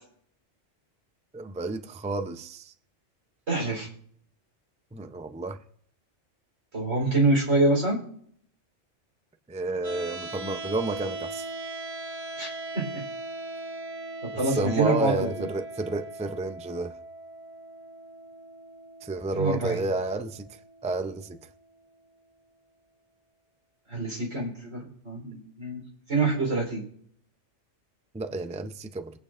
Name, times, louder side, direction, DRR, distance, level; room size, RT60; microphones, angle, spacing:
voice 1, 1.3-2.7 4.9-5.6 9.5-11.5 14.4-16.9 19.0-20.5 20.8-21.4 28.1-29.1, right 3 dB, 10° right, 8 dB, 0.4 m, -31 dB
voice 2, 3.5-3.9 6.7-8.0 12.4-12.5 12.7-13.0 14.4-15.5 19.4-19.8 23.9-25.8 26.1-26.8, right 2 dB, 90° right, -1 dB, 4.3 m, -26 dB
sound 1, 9.8-21.9, right 2 dB, 25° right, 1.3 m, -40 dB
23.0 x 8.8 x 2.5 m, 0.63 s
omnidirectional pair, 1.2 m